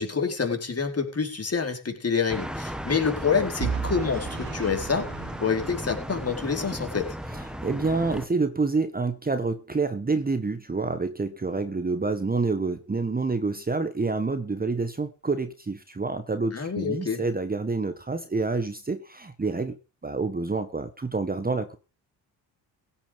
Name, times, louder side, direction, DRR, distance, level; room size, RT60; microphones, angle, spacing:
voice 1, 0.0-5.1 5.4-7.1 16.5-17.2, left 5 dB, 30° left, 4.5 m, -27 dB
sound 1, 2.3-8.3, equal, ahead, 2.0 m, -35 dB
Vehicle / Engine, 3.6-6.6, right 7 dB, 85° right, 3.3 m, -35 dB
voice 2, 7.3-21.8, right 3 dB, 20° right, 1.5 m, -28 dB
16.5 x 8.7 x 5.4 m
hypercardioid pair, 55°, 46 cm